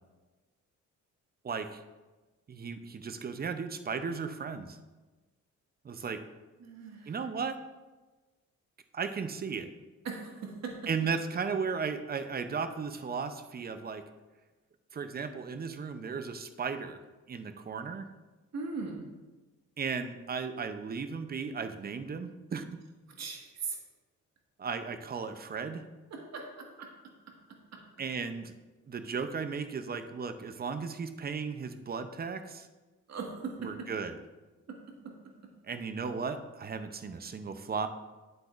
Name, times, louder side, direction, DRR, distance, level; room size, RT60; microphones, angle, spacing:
voice 1, 1.4-1.8 2.5-4.8 5.8-6.2 7.1-7.6 8.9-9.7 10.9-14.0 14.9-17.0 17.3-18.1 19.8-22.6 24.6-25.9 28.0-28.5 28.9-32.7 33.6-34.2 35.7-37.9, right 5 dB, 30° right, 10 dB, 0.6 m, -35 dB
voice 2, 6.6-7.1 10.0-10.8 18.5-19.1 23.2-23.8 26.1-26.9 33.1-33.9 34.7-34.8 35.0-35.1, right 4 dB, 60° right, 1 dB, 1.7 m, -39 dB
8.9 x 7.8 x 2.5 m, 1.2 s
cardioid pair, 90°, 30 cm